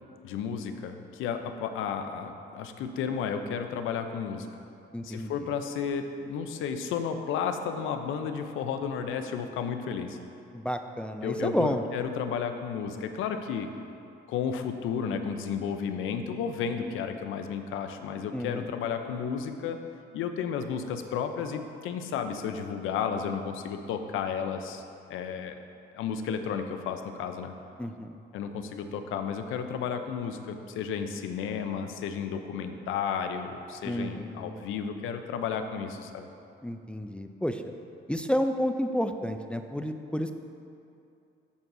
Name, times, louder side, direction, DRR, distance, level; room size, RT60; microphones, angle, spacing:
voice 1, 0.2-4.5 5.0-10.2 11.2-13.7 14.3-19.8 20.1-24.8 25.1-25.6 25.9-27.5 28.3-36.3, left 7 dB, 90° left, 7 dB, 0.6 m, -32 dB
voice 2, 4.9-5.3 10.5-11.8 18.3-18.6 27.8-28.2 33.8-34.6 36.6-37.6 38.1-40.3, equal, 5° left, 6 dB, 0.4 m, -30 dB
14.0 x 6.1 x 2.7 m, 2.6 s
cardioid pair, 90°, 20 cm